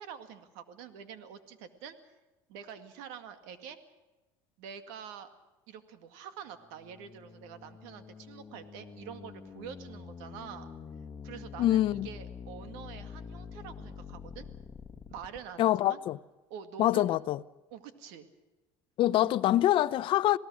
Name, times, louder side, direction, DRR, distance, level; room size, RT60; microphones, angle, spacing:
voice 1, 0.0-2.1 2.5-3.8 4.6-5.3 5.7-10.7 11.2-14.5 15.1-16.0 16.5-17.1 17.7-18.3 19.2-19.4, right 8 dB, 85° right, 2.1 m, -46 dB
sound 1, 6.6-15.4, left 5 dB, 30° left, 1.8 m, -46 dB
voice 2, 11.6-12.1 15.6-16.2 16.8-17.4 19.0-20.4, left 14 dB, 55° left, 0.7 m, -25 dB
27.5 x 18.0 x 6.4 m
supercardioid pair, 105°, 10 cm